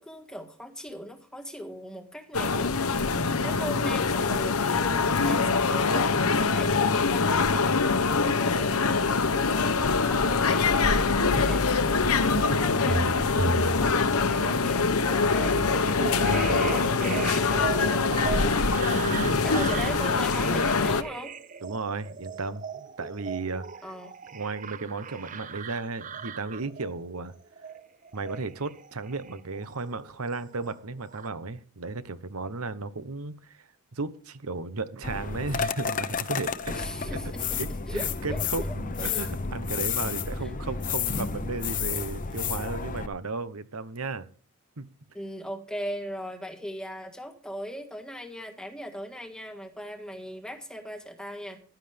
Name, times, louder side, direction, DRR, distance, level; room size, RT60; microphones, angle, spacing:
voice 1, 0.0-2.8 3.4-10.8 11.3-15.6 16.3-18.6 19.4-21.3 23.8-24.1 36.7-37.6 37.9-39.3 40.4-40.5 45.1-51.6, equal, 5° left, 5 dB, 1.6 m, -39 dB
sound 1, 2.3-21.0, left 4 dB, 75° left, 1.1 m, -24 dB
voice 2, 11.1-11.6 16.0-16.8 18.9-19.5 21.6-23.9 24.3-27.3 28.1-36.8 37.0-37.2 37.6-44.3 44.8-44.9, right 3 dB, 75° right, 13 dB, 1.1 m, -35 dB
sound 2, 12.4-30.1 30.4-31.3, right 4 dB, 35° right, 0.6 m, -36 dB
sound 3, 35.0-43.1, left 6 dB, 35° left, 0.8 m, -31 dB
15.0 x 12.0 x 3.5 m, 0.42 s
head